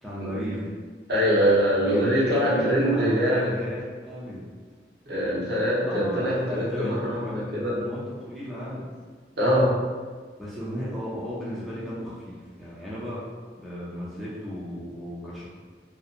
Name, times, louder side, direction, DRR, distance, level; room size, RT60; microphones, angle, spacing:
voice 1, 0.0-0.7 1.9-4.4 5.8-8.8 10.4-13.2 13.6-15.5, equal, ahead, -9 dB, 0.4 m, -35 dB
voice 2, 1.1-3.6 5.1-7.7 9.4-9.7, equal, 65° right, -8 dB, 0.8 m, -23 dB
2.7 x 2.2 x 2.4 m, 1.5 s
head